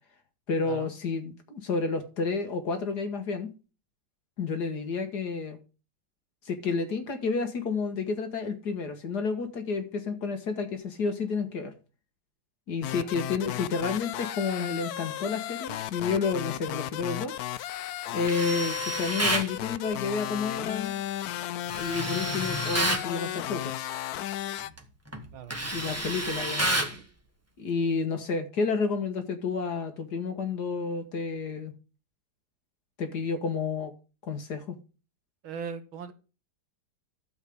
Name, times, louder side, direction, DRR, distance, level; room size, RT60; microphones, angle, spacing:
voice 1, 0.5-3.5 4.4-5.6 6.5-11.7 12.7-17.3 18.1-21.0 21.7-23.8 25.7-26.7 27.6-31.7 33.0-33.9 34.2-34.8, left 4 dB, 55° left, 1.8 m, -30 dB
sound 1, 12.8-24.7, left 13 dB, 90° left, 0.8 m, -35 dB
Tools, 18.2-19.5 21.7-23.1 24.6-24.8 25.1-27.0, right 1 dB, 10° right, 0.9 m, -29 dB
voice 2, 35.4-36.1, right 6 dB, 75° right, 2.1 m, -39 dB
12.5 x 7.2 x 3.5 m
omnidirectional pair, 2.3 m